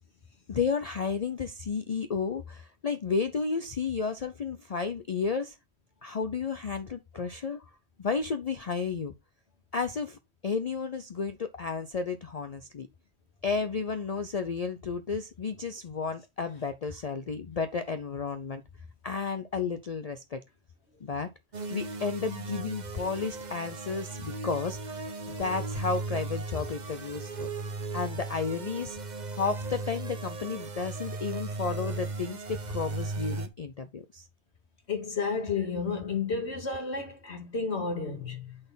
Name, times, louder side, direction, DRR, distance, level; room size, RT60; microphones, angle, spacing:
voice 1, 0.5-5.6 6.0-7.6 8.0-9.1 9.7-12.9 13.4-18.6 19.0-20.4 21.0-21.3 21.7-25.0 25.3-27.5 27.9-29.0 29.3-34.3, left 5 dB, 45° left, 0.6 m, -32 dB
sound 1, 21.5-33.5, right 3 dB, 45° right, 1.0 m, -36 dB
voice 2, 34.9-38.6, left 5 dB, 80° left, 2.2 m, -32 dB
8.6 x 4.2 x 3.9 m
omnidirectional pair, 1.1 m